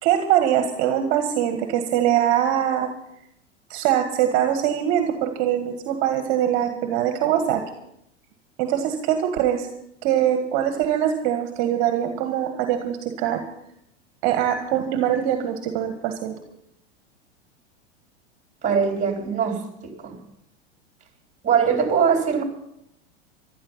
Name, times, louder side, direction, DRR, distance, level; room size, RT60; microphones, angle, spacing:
voice 1, 0.0-2.9 3.7-7.6 8.6-9.7 10.0-13.4 14.2-16.3, right 10 dB, 50° right, 6 dB, 1.8 m, -22 dB
voice 2, 18.6-20.2 21.4-22.4, right 6 dB, 20° right, 3 dB, 3.7 m, -22 dB
15.0 x 12.5 x 5.6 m, 0.77 s
hypercardioid pair, 100°, 35 cm